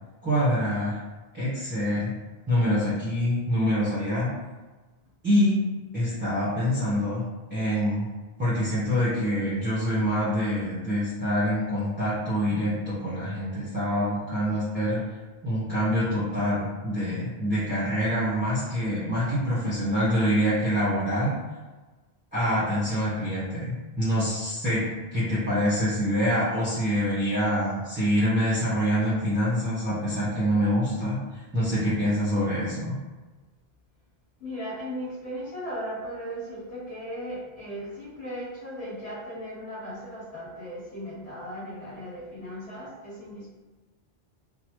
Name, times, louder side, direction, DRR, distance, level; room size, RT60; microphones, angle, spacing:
voice 1, 0.2-1.0 1.3-2.1 2.5-4.3 5.2-5.5 5.9-7.2 7.5-8.1 8.4-15.0 15.4-21.3 22.3-32.9, equal, 10° right, -11 dB, 0.9 m, -25 dB
voice 2, 34.4-43.5, equal, 40° left, -9 dB, 1.3 m, -37 dB
3.2 x 2.1 x 3.0 m, 1.2 s
omnidirectional pair, 1.0 m